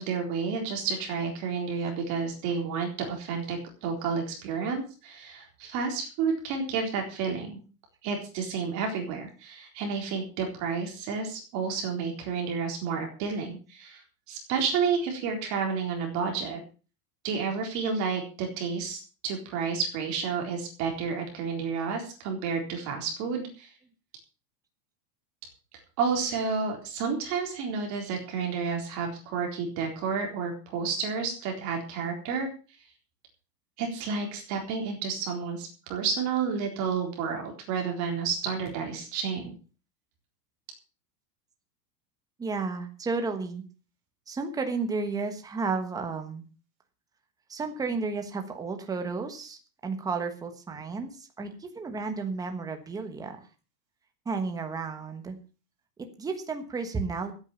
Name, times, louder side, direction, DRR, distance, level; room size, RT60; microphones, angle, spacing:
voice 1, 0.0-7.6 8.0-14.0 14.3-16.6 17.2-23.7 26.0-32.5 33.8-39.6, right 5 dB, 35° right, 2 dB, 4.0 m, -30 dB
voice 2, 42.4-43.6 44.3-46.4 47.5-53.4 54.2-55.4 56.0-57.3, right 4 dB, 5° right, 6 dB, 1.3 m, -32 dB
14.0 x 8.9 x 7.0 m, 0.36 s
supercardioid pair, 180°, 49 cm